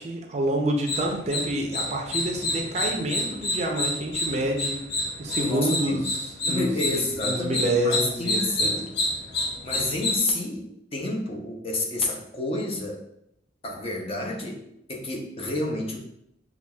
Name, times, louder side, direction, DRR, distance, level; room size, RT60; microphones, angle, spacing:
voice 1, 0.0-4.8 5.2-8.7, right 1 dB, 40° right, 1 dB, 0.5 m, -28 dB
sound 1, 0.9-10.2, left 1 dB, 65° left, 1.0 m, -29 dB
voice 2, 5.4-6.0 6.5-8.9 9.6-13.0 13.6-16.0, left 2 dB, 35° left, 0 dB, 0.6 m, -29 dB
5.7 x 2.3 x 2.2 m, 0.78 s
head